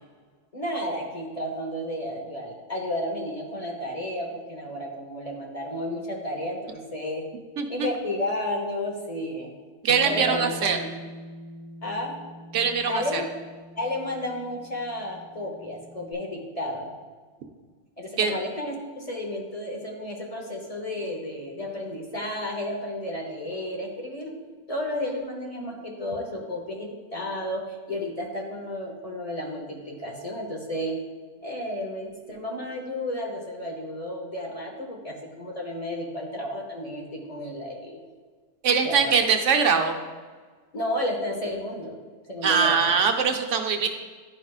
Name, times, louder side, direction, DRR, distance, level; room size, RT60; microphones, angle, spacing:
voice 1, 0.5-7.2 7.7-9.5 10.0-10.9 11.8-12.2 12.9-13.3 13.8-16.9 18.0-24.3 24.7-31.0 31.4-38.0 38.8-39.2 40.7-42.0 42.3-42.9, left 1 dB, 30° left, -1 dB, 1.0 m, -32 dB
voice 2, 7.6-7.9 9.8-10.8 12.5-13.2 18.2-18.4 38.6-39.9 42.4-43.9, right 6 dB, 85° right, 4 dB, 1.1 m, -22 dB
Bass guitar, 9.9-16.1, right 1 dB, 60° right, 0.5 m, -43 dB
11.0 x 5.0 x 2.4 m, 1.5 s
omnidirectional pair, 1.2 m